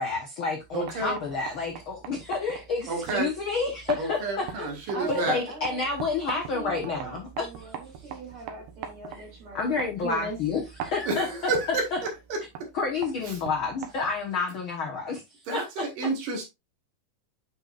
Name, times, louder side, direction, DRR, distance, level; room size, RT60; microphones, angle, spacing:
voice 1, 0.0-7.7 9.1-9.2 9.5-12.0 12.7-15.2 15.5-15.9, left 4 dB, 75° left, 1.2 m, -30 dB
sound 1, 0.6-14.3, right 8 dB, 85° right, 3.1 m, -43 dB
voice 2, 0.7-1.2 2.9-3.3 4.0-5.4 11.1-11.8 13.3-13.4 15.5-16.5, right 3 dB, 65° right, 3.2 m, -30 dB
voice 3, 4.9-5.8 6.3-10.4, right 2 dB, 35° right, 3.8 m, -39 dB
8.8 x 5.8 x 2.5 m
omnidirectional pair, 4.2 m